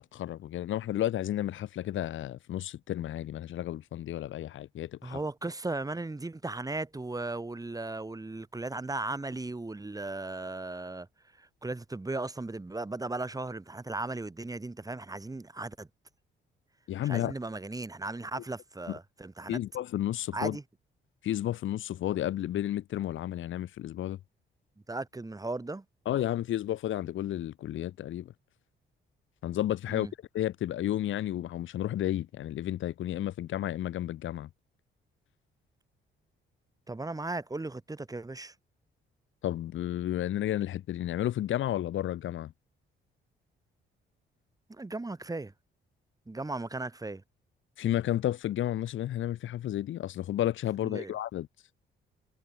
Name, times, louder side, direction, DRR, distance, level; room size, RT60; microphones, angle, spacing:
voice 1, 0.0-5.2 16.9-17.3 18.9-19.0 19.5-20.6 21.2-24.2 26.1-28.3 29.4-30.1 30.3-34.5 39.4-42.5 47.8-51.5, left 12 dB, 75° left, 3.5 m, -32 dB
voice 2, 5.0-11.1 11.4-15.9 17.0-19.6 20.3-20.6 24.9-25.8 29.9-30.1 36.9-38.5 44.7-45.5 46.3-47.2 50.8-51.1, right 2 dB, 20° right, 7.7 m, -36 dB
cardioid pair, 90°, 20 cm